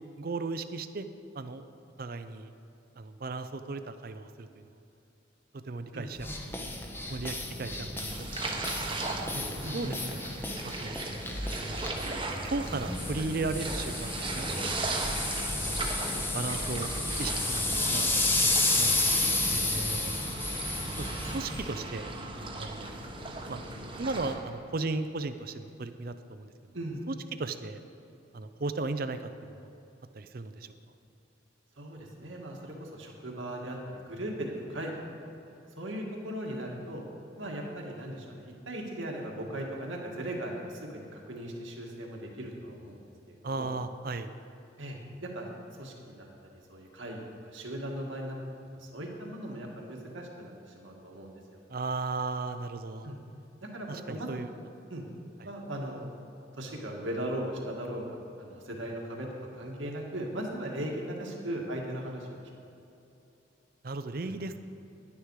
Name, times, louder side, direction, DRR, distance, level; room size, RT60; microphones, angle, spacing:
voice 1, 0.2-1.1 1.3-1.7 2.0-2.5 3.0-4.7 5.6-6.3 7.1-8.7 9.3-10.2 10.6-11.0 11.6-12.1 12.4-14.7 15.5-16.9 17.2-19.0 19.5-20.1 21.0-22.1 22.6-23.0 23.5-26.5 27.1-27.8 28.3-29.7 30.1-30.7 43.4-44.3 51.7-53.1 53.9-54.5 63.8-64.6, right 3 dB, 50° right, 10 dB, 0.5 m, -36 dB
sound 1, 6.2-21.7, left 2 dB, 10° left, 0.8 m, -32 dB
sound 2, 8.1-24.4, right 2 dB, 25° right, 1.0 m, -37 dB
voice 2, 9.6-9.9 19.1-19.3 26.7-27.0 31.8-34.9 35.2-35.3 35.8-37.0 37.4-43.7 44.8-45.5 45.8-46.3 46.7-48.4 48.8-51.6 53.0-53.2 53.6-54.6 54.9-55.0 55.4-56.1 56.5-59.3 59.5-62.3 64.2-64.4, right 1 dB, 85° right, 0 dB, 1.9 m, -38 dB
11.0 x 10.0 x 4.8 m, 2.8 s
head